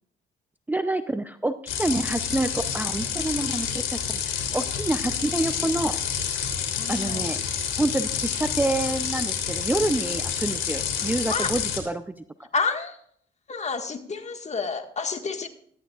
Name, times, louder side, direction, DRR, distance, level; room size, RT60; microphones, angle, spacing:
voice 1, 0.7-6.0 6.9-7.4 7.8-12.1 12.4-12.5, right 2 dB, 10° right, 10 dB, 0.6 m, -27 dB
sound 1, 1.7-11.8, left 8 dB, 80° left, 3.2 m, -28 dB
voice 2, 6.8-7.3 11.3-11.5 12.5-12.9 13.5-15.5, left 4 dB, 35° left, 5 dB, 1.8 m, -29 dB
18.0 x 13.5 x 2.5 m, 0.65 s
cardioid pair, 90°, 20 cm